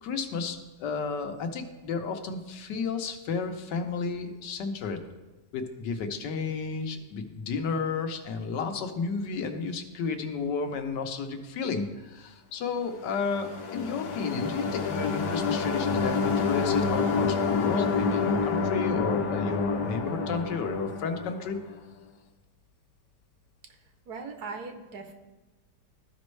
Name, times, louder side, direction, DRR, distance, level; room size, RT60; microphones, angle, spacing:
voice 1, 0.0-5.0 5.5-21.6, left 5 dB, 90° left, 6 dB, 1.4 m, -32 dB
sound 1, 13.1-21.8, left 5 dB, 75° left, 1.3 m, -28 dB
voice 2, 24.1-25.1, right 4 dB, 70° right, 5 dB, 1.4 m, -39 dB
13.5 x 5.2 x 3.2 m, 1.2 s
omnidirectional pair, 1.8 m